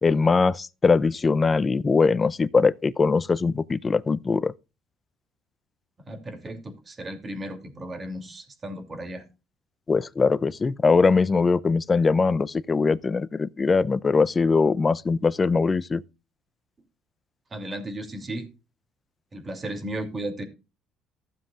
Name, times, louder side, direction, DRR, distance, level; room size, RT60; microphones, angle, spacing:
voice 1, 0.0-4.5 9.9-16.0, left 4 dB, 25° left, 0.6 m, -21 dB
voice 2, 6.1-9.2 17.5-18.5 19.3-20.4, right 1 dB, 25° right, 2.8 m, -35 dB
15.0 x 7.5 x 2.4 m
cardioid pair, 100°, 0 cm